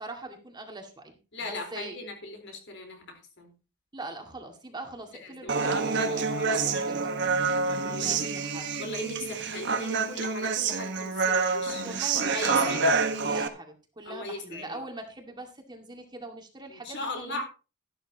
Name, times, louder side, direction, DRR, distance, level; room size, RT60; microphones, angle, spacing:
voice 1, 0.0-2.0 3.9-7.1 7.7-8.8 11.8-12.2 12.5-17.4, right 2 dB, 20° right, 3 dB, 2.1 m, -42 dB
voice 2, 1.3-3.5 5.2-6.6 7.8-8.3 8.8-11.9 12.2-12.9 14.0-14.8 16.7-17.4, left 2 dB, 60° left, 3 dB, 4.2 m, -38 dB
Human voice, 5.5-13.5, right 4 dB, 60° right, 1.4 m, -27 dB
13.5 x 12.0 x 2.9 m, 0.32 s
head